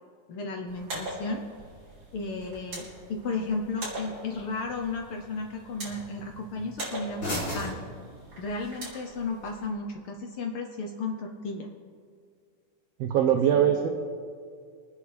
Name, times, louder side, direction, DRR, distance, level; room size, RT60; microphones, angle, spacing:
voice 1, 0.3-1.4 2.1-7.8 8.4-11.7 13.5-13.6, left 3 dB, 75° left, 2 dB, 1.2 m, -34 dB
sound 1, 0.7-9.7, right 1 dB, 45° right, 5.2 m, -42 dB
sound 2, 0.8-8.8, left 1 dB, 40° left, 3.8 m, -42 dB
voice 2, 13.0-13.9, right 9 dB, 70° right, 4 dB, 1.6 m, -22 dB
24.5 x 9.7 x 3.4 m, 2.1 s
omnidirectional pair, 3.5 m